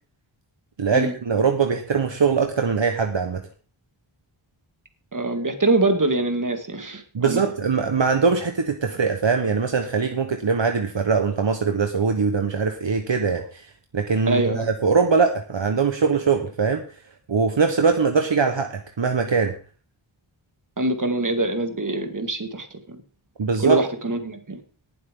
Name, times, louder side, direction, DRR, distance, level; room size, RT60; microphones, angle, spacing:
voice 1, 0.8-3.4 7.1-13.6 13.9-16.8 17.3-19.5 23.4-23.8, right 5 dB, 60° right, 5 dB, 1.2 m, -22 dB
voice 2, 5.1-7.4 14.3-14.7 20.8-23.0 23.6-24.6, right 2 dB, 40° right, 7 dB, 1.9 m, -24 dB
18.5 x 7.5 x 3.7 m, 0.39 s
wide cardioid pair, 75°, 49 cm